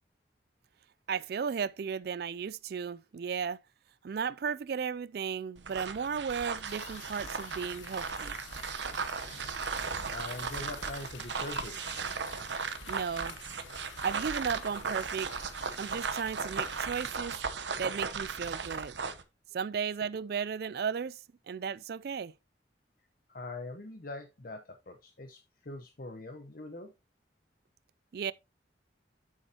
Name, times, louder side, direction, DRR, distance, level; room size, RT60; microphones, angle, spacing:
voice 1, 1.1-3.6 4.0-8.4 12.9-13.4 14.0-15.3 15.8-17.4 17.8-19.0 19.5-22.3 28.1-28.3, right 6 dB, 55° right, 0.3 m, -35 dB
sound 1, 5.6-19.2, right 5 dB, 70° right, 0.9 m, -37 dB
sound 2, 6.7-17.1, left 7 dB, 90° left, 0.9 m, -50 dB
voice 2, 10.1-11.8 23.3-26.9, left 2 dB, 50° left, 0.9 m, -43 dB
8.6 x 7.1 x 2.8 m
head